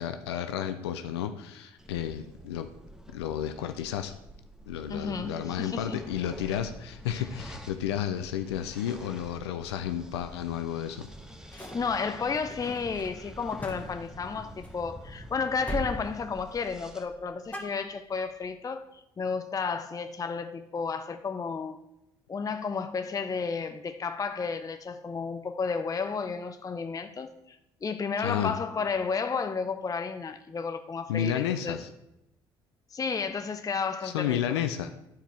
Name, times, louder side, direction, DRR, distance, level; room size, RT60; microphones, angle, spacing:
voice 1, 0.0-2.7 3.1-4.1 4.7-11.1 28.2-28.6 31.1-31.9 34.0-34.9, left 10 dB, 85° left, 0.4 m, -32 dB
sound 1, 1.8-17.0, equal, 5° right, 1.3 m, -47 dB
voice 2, 4.9-6.0 7.1-7.2 11.5-21.8 22.3-31.8 32.9-34.4, left 5 dB, 25° left, 0.6 m, -32 dB
sound 2, 11.0-15.2 15.6-16.0 16.3-16.8 17.1-18.4, equal, 10° left, 1.9 m, -41 dB
11.5 x 4.5 x 4.3 m
hypercardioid pair, 55°, 13 cm